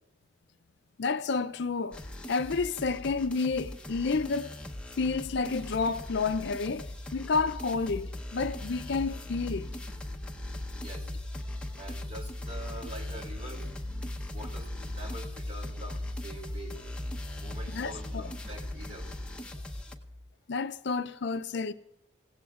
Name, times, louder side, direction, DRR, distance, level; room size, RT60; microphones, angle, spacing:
voice 1, 1.0-2.0 2.3-4.5 5.0-9.7 17.7-18.2 20.5-21.7, left 4 dB, 55° left, 0.4 m, -30 dB
sound 1, 1.9-19.9, left 1 dB, 5° left, 0.8 m, -42 dB
sound 2, 6.2-20.3, left 1 dB, 50° right, 2.4 m, -40 dB
voice 2, 10.7-11.1 11.8-13.7 14.2-16.8 17.3-19.1, right 1 dB, 30° right, 2.6 m, -45 dB
28.0 x 17.0 x 2.4 m
head